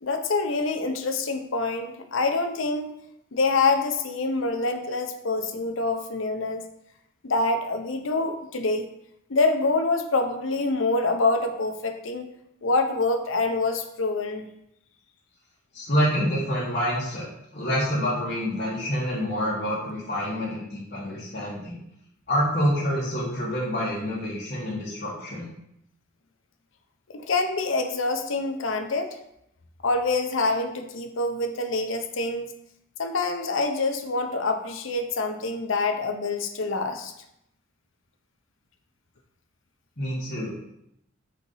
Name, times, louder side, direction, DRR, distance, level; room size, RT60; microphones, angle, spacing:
voice 1, 0.0-2.9 3.3-6.6 7.2-8.9 9.3-12.3 12.6-14.5 27.1-29.2 29.8-32.5 33.0-37.1, left 3 dB, 70° left, 6 dB, 0.7 m, -26 dB
voice 2, 15.7-17.3 17.5-21.8 22.3-25.5 40.0-40.7, equal, 45° left, -8 dB, 1.4 m, -27 dB
4.4 x 4.1 x 5.5 m, 0.79 s
head